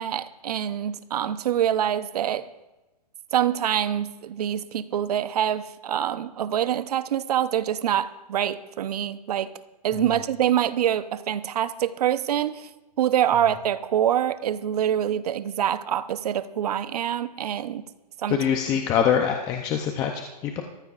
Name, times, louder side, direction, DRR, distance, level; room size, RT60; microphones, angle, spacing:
voice 1, 0.0-2.5 3.3-9.5 9.8-12.7 13.0-17.8 18.2-18.4, right 10 dB, 65° right, 0.8 m, -25 dB
voice 2, 18.3-20.6, left 8 dB, 15° left, 0.6 m, -24 dB
22.0 x 15.0 x 2.5 m
hypercardioid pair, 160°, 21 cm